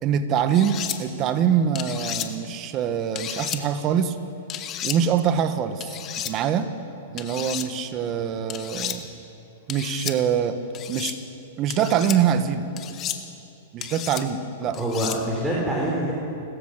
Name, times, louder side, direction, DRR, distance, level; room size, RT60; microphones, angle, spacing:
voice 1, 0.0-4.1 4.8-5.9 6.2-6.7 7.1-9.1 9.7-10.6 10.9-11.2 11.6-12.6 13.7-14.8, right 8 dB, 35° right, 9 dB, 1.6 m, -24 dB
sound 1, 0.5-1.0 1.7-2.3 3.2-3.6 4.5-5.0 5.8-6.3 7.2-7.7 8.5-9.0 9.7-10.2 10.7-11.2 11.7-12.2 12.8-13.2 13.8-14.2 14.7-15.2, left 11 dB, 35° left, 1.5 m, -32 dB
voice 2, 14.6-16.1, right 1 dB, 10° right, -4 dB, 4.2 m, -25 dB
29.5 x 14.5 x 6.8 m, 2.8 s
hypercardioid pair, 120°, 0 cm